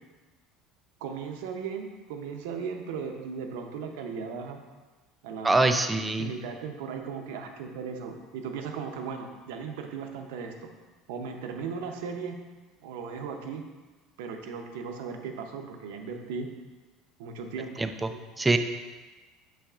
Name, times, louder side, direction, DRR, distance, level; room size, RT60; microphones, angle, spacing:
voice 1, 1.0-4.6 5.2-5.7 6.2-10.7 11.1-12.4 12.8-13.6 14.2-16.5 17.2-18.2, right 5 dB, 90° right, 4 dB, 0.7 m, -37 dB
voice 2, 5.4-6.3 17.8-18.1 18.4-18.6, right 2 dB, 10° right, 8 dB, 0.3 m, -24 dB
7.1 x 5.7 x 2.5 m, 1.3 s
cardioid pair, 145°, 0 cm